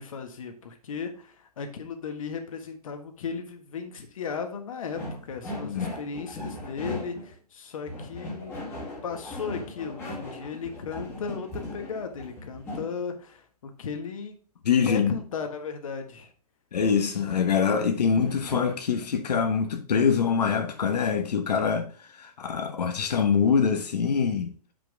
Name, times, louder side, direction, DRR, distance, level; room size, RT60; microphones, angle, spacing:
voice 1, 0.0-8.6 9.0-14.4 14.8-16.3, left 5 dB, 55° left, 1.5 m, -36 dB
sound 1, 4.9-7.4 7.9-13.0 18.2-18.8, left 1 dB, 10° left, 1.3 m, -38 dB
voice 2, 5.6-5.9 14.6-15.2 16.7-24.5, left 6 dB, 85° left, 1.2 m, -24 dB
6.9 x 5.9 x 3.5 m
hypercardioid pair, 170°, 20 cm